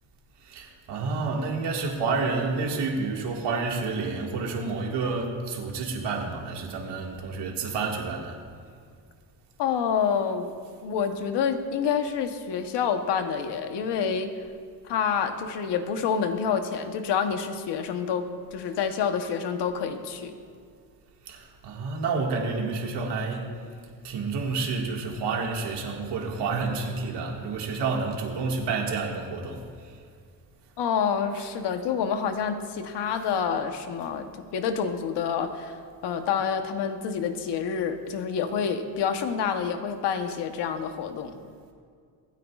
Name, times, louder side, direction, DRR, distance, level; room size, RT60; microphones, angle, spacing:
voice 1, 0.4-8.4 21.3-23.5 24.0-29.6, right 4 dB, 90° right, 0 dB, 1.9 m, -29 dB
voice 2, 9.6-10.5 10.8-14.3 14.8-20.3 30.8-41.4, left 7 dB, 85° left, 7 dB, 1.1 m, -28 dB
24.5 x 9.2 x 2.4 m, 2.1 s
cardioid pair, 105°, 40 cm